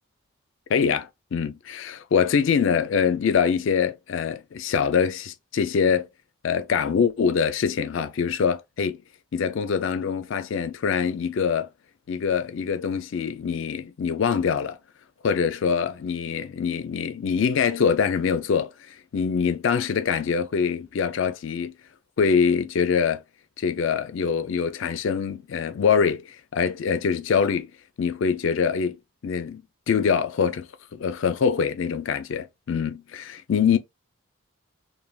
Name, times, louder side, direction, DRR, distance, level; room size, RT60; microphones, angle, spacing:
voice 1, 0.7-1.6 2.1-6.1 6.4-9.0 9.3-11.7 12.1-14.8 15.2-21.7 22.2-23.2 23.6-27.7 28.0-29.0 29.2-33.8, left 6 dB, 60° left, 0.4 m, -24 dB
3.3 x 2.2 x 2.3 m
head